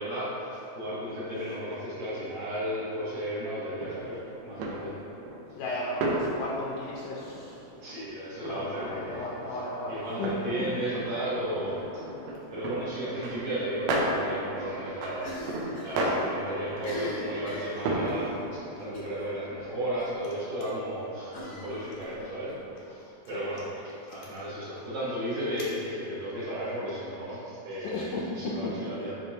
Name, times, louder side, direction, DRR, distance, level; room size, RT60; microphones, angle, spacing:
voice 1, 0.0-4.9 7.7-9.6 9.9-12.0 12.5-15.3 15.8-22.5 22.8-29.1, right 1 dB, 65° right, -10 dB, 2.1 m, -34 dB
sound 1, 3.8-18.6, right 1 dB, 85° right, 1.6 m, -35 dB
voice 2, 5.6-7.6 8.4-10.3 10.6-10.7 23.3-23.8 27.8-28.8, left 2 dB, 80° left, -4 dB, 2.0 m, -35 dB
Cough, 15.2-16.0 16.2-16.3 16.7-18.3 18.9-19.2 19.6-19.7 20.0-20.1 21.3-22.6, left 1 dB, 65° left, 1.0 m, -39 dB
10.0 x 3.5 x 2.8 m, 2.8 s
omnidirectional pair, 4.0 m